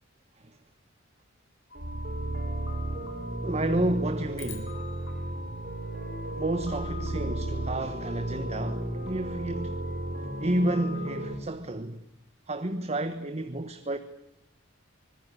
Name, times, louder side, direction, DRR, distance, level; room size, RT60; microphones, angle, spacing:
sound 1, 1.7-11.2, left 2 dB, 55° left, 4.5 m, -45 dB
sound 2, 1.7-11.3, right 1 dB, 50° right, 5.2 m, -34 dB
voice 1, 3.4-4.8 6.3-9.8 10.4-12.0 12.5-14.0, right 1 dB, 35° right, 1.3 m, -30 dB
sound 3, 4.4-6.8, left 11 dB, 85° left, 4.5 m, -50 dB
25.0 x 20.5 x 9.9 m
head